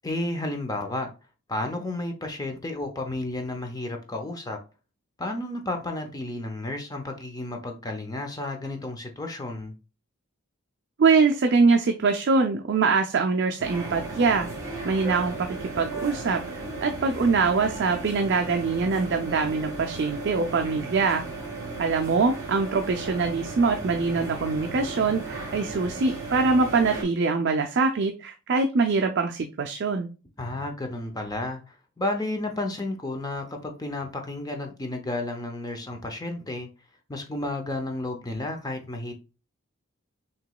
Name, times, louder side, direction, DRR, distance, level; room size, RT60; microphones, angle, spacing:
voice 1, 0.0-1.1 1.5-4.6 5.2-9.7 30.4-36.7 37.1-39.1, left 2 dB, 15° left, 0.5 m, -32 dB
voice 2, 11.0-14.5 14.8-21.2 21.8-30.1, right 4 dB, 50° right, 0.4 m, -23 dB
sound 1, 13.6-27.0, right 3 dB, 15° right, 1.6 m, -35 dB
5.8 x 3.0 x 2.3 m
head